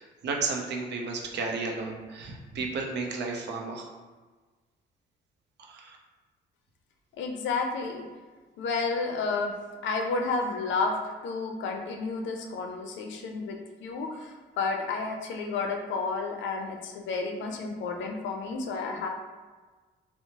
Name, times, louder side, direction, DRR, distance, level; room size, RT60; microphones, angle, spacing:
voice 1, 0.0-3.9 5.6-6.0, right 4 dB, 60° right, 1 dB, 0.5 m, -33 dB
voice 2, 7.2-8.1 8.6-9.5 9.8-19.1, left 4 dB, 75° left, 3 dB, 0.4 m, -31 dB
2.8 x 2.0 x 2.7 m, 1.3 s
cardioid pair, 90°, 20 cm